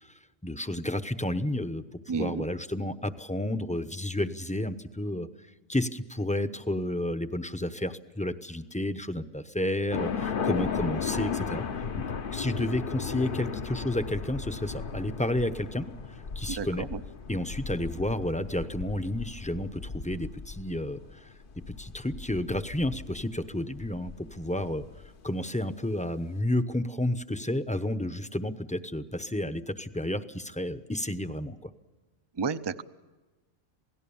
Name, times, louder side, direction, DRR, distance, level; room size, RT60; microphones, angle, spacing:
voice 1, 0.4-1.8 2.1-5.3 5.7-11.6 12.0-12.1 12.3-15.9 16.3-16.9 17.3-21.3 21.8-24.8 25.2-31.7, left 1 dB, 5° left, 9 dB, 0.8 m, -31 dB
voice 2, 2.1-2.5 16.5-17.0 32.4-32.8, right 5 dB, 30° right, 12 dB, 0.6 m, -31 dB
sound 1, 9.9-25.1, left 6 dB, 50° left, 1.0 m, -36 dB
28.0 x 18.0 x 7.1 m, 1.2 s
omnidirectional pair, 1.2 m